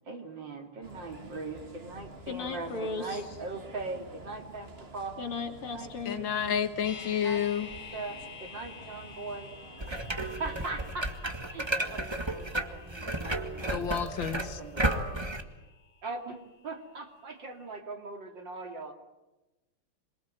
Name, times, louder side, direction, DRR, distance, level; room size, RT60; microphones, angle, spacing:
voice 1, 0.1-5.2 5.7-6.8 7.2-9.5 9.9-14.1 14.6-15.3 16.0-16.4 16.6-18.9, right 3 dB, 55° right, 4 dB, 3.3 m, -40 dB
sound 1, 0.8-10.9, right 2 dB, 30° right, 2.1 m, -49 dB
voice 2, 2.3-3.2 5.2-6.2, left 4 dB, 80° left, 4 dB, 3.8 m, -36 dB
voice 3, 6.1-7.7 13.7-14.6, left 8 dB, 65° left, 11 dB, 2.0 m, -30 dB
sound 2, 6.8-16.9 17.2-17.3, left 5 dB, 45° left, 2.3 m, -50 dB
sound 3, 9.8-15.4, right 1 dB, 15° right, 1.5 m, -33 dB
26.5 x 22.5 x 9.0 m, 1.0 s
omnidirectional pair, 2.4 m